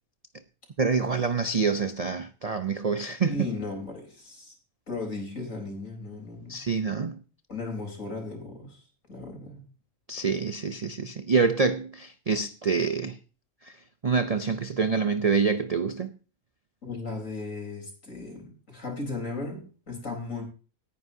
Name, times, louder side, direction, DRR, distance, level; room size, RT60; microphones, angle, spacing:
voice 1, 0.8-3.5 6.5-7.2 10.1-13.2 13.6-13.7 14.0-16.1, right 5 dB, 45° right, 0.5 m, -26 dB
voice 2, 3.3-4.5 4.9-6.6 7.5-8.8 9.1-9.6 16.8-20.5, left 3 dB, 60° left, 4.4 m, -36 dB
17.5 x 9.9 x 2.8 m
omnidirectional pair, 1.5 m